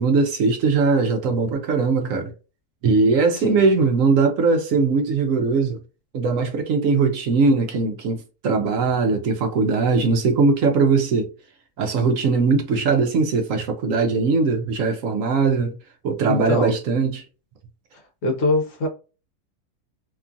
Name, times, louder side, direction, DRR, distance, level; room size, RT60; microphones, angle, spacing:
voice 1, 0.0-2.3 2.8-5.8 6.1-11.3 11.8-15.8 16.0-17.2, right 4 dB, 65° right, 0.9 m, -20 dB
voice 2, 16.3-16.8 17.9-18.9, left 2 dB, 60° left, 1.0 m, -24 dB
2.9 x 2.4 x 2.5 m
omnidirectional pair, 1.7 m